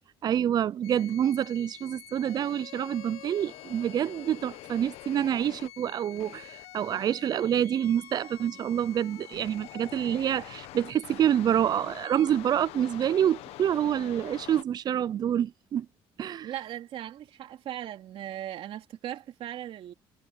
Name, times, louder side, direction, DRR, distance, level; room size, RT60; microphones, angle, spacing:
voice 1, 0.2-15.9 16.2-16.5, right 10 dB, 40° right, 0.4 m, -27 dB
sound 1, 0.8-14.6, left 16 dB, 85° left, 1.2 m, -46 dB
voice 2, 16.4-19.9, right 12 dB, 65° right, 2.8 m, -38 dB
cardioid pair, 115°, 10 cm